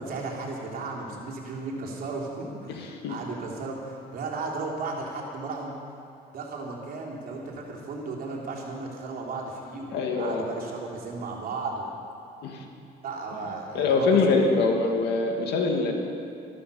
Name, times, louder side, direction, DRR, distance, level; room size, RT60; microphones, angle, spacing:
voice 1, 0.0-5.7 6.3-11.9 13.0-14.4, right 3 dB, 60° right, -2 dB, 3.4 m, -35 dB
voice 2, 2.7-3.1 9.9-10.4 12.4-12.6 13.7-15.9, left 4 dB, 80° left, 2 dB, 2.3 m, -24 dB
14.0 x 13.0 x 7.1 m, 2.6 s
cardioid pair, 110°, 17 cm